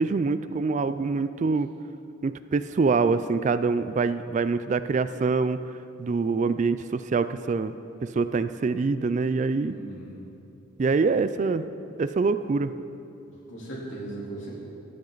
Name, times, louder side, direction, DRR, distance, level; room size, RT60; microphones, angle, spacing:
voice 1, 0.0-1.7 2.2-5.6 6.0-7.7 8.0-9.8 10.8-11.7 12.0-12.7, right 4 dB, 35° right, 13 dB, 0.3 m, -25 dB
voice 2, 9.6-10.1 13.5-14.5, right 2 dB, 70° left, -5 dB, 3.3 m, -38 dB
14.0 x 12.0 x 3.9 m, 2.7 s
head